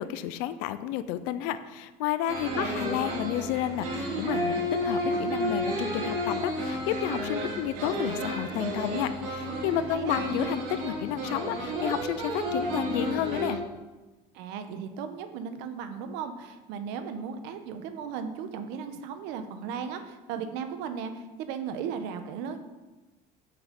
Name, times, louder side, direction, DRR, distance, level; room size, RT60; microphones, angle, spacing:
voice 1, 0.0-13.6, left 11 dB, 75° left, 13 dB, 0.6 m, -31 dB
sound 1, 2.3-13.6, equal, 85° right, 2.7 m, -31 dB
voice 2, 2.4-2.8 9.8-10.2 14.3-22.6, right 7 dB, 70° right, 8 dB, 1.1 m, -36 dB
8.0 x 6.9 x 5.3 m, 1.2 s
cardioid pair, 155°, 19 cm